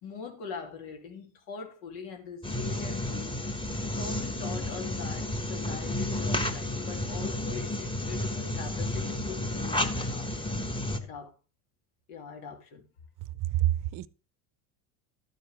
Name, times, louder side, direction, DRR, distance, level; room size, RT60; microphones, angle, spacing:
voice 1, 0.0-3.4 3.9-10.6 11.0-11.3 12.1-12.8, left 5 dB, 80° left, 3.0 m, -42 dB
sound 1, 2.4-11.0, left 1 dB, 10° left, 1.1 m, -32 dB
voice 2, 13.2-14.1, right 14 dB, 45° right, 0.7 m, -28 dB
12.0 x 9.4 x 3.4 m
supercardioid pair, 120°, 44 cm